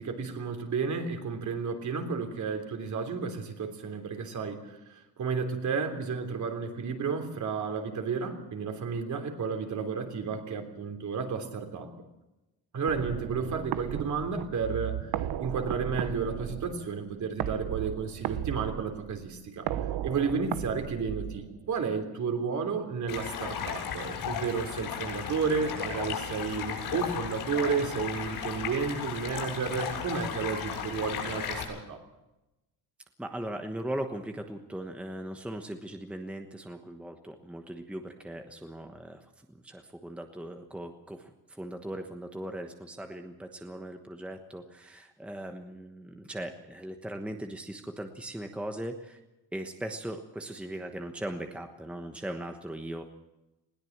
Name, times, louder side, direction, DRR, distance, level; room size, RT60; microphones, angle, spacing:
voice 1, 0.0-4.8 5.2-11.9 12.7-15.0 15.4-19.7 20.0-32.0, right 5 dB, 50° right, 5 dB, 3.4 m, -32 dB
sound 1, 12.9-21.8, right 12 dB, 75° right, 1.1 m, -35 dB
Stream, 23.1-31.6, left 7 dB, 75° left, 7.2 m, -35 dB
voice 2, 33.2-49.2 49.5-53.0, right 1 dB, 5° right, 5 dB, 1.2 m, -39 dB
20.5 x 17.5 x 7.3 m, 0.97 s
cardioid pair, 145°, 38 cm